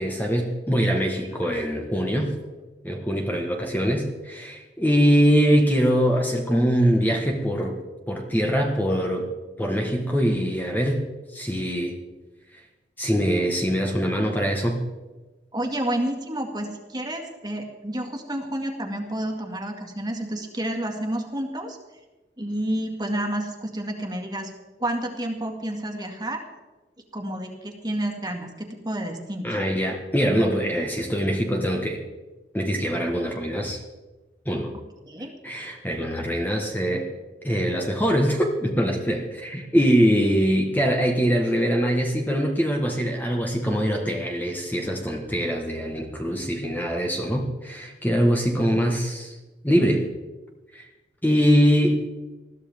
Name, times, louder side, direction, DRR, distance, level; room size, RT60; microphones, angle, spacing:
voice 1, 0.0-2.3 2.8-7.8 8.1-9.3 9.6-12.0 13.0-14.8 29.4-32.0 32.5-33.8 34.4-34.7 35.4-37.1 37.4-49.4 49.6-50.1 50.7-50.8 51.2-52.0, equal, 10° left, 1 dB, 1.4 m, -23 dB
voice 2, 15.5-21.8 22.4-24.5 24.8-26.4 27.1-29.5 35.0-35.3, right 1 dB, 25° right, 2 dB, 2.0 m, -30 dB
21.0 x 14.0 x 3.6 m, 1.2 s
head